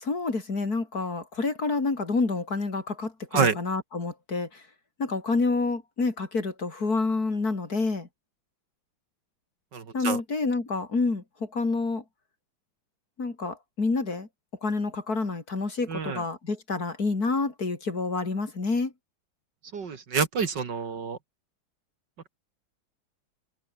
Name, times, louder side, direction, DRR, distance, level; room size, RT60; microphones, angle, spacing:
voice 1, 0.0-4.6 5.0-8.1 9.9-12.0 13.2-14.3 14.6-18.9, left 3 dB, 45° left, 3.8 m, -28 dB
voice 2, 9.7-10.2 15.9-16.2 19.7-21.2, right 5 dB, 55° right, 2.5 m, -27 dB
omnidirectional pair, 2.3 m